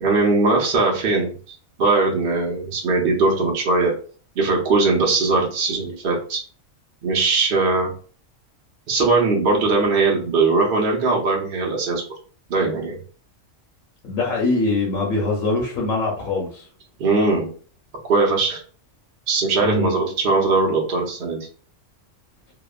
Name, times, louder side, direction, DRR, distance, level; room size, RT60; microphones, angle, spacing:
voice 1, 0.0-4.0 4.4-6.4 7.0-7.9 8.9-12.0 12.5-13.0 17.0-17.5 18.0-18.6 19.3-21.5, right 3 dB, 55° right, 0.7 m, -20 dB
voice 2, 14.0-16.7 19.6-19.9, left 3 dB, 90° left, 1.1 m, -23 dB
2.8 x 2.1 x 2.3 m
omnidirectional pair, 1.4 m